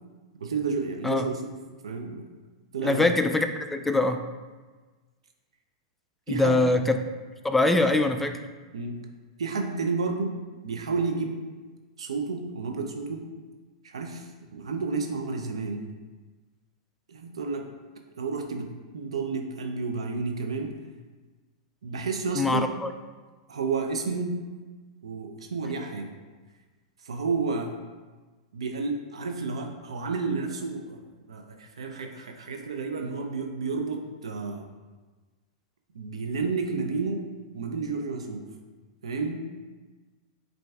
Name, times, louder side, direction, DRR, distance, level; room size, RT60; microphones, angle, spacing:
voice 1, 0.4-1.4 1.8-2.3 2.7-3.1 6.3-6.6 8.7-9.0 9.4-10.3 10.6-11.4 12.0-13.3 13.8-15.8 17.1-17.7 18.2-18.7 18.9-20.7 21.8-22.7 23.5-24.4 25.0-26.1 27.0-27.7 28.5-31.0 31.3-34.6 35.9-37.2 37.5-38.4 39.0-39.4, right 4 dB, 90° right, 4 dB, 0.5 m, -31 dB
voice 2, 2.8-4.2 6.3-7.0 7.4-8.4 22.4-22.9, left 2 dB, 5° left, 6 dB, 0.3 m, -23 dB
7.6 x 2.6 x 2.3 m, 1.3 s
hypercardioid pair, 120°, 3 cm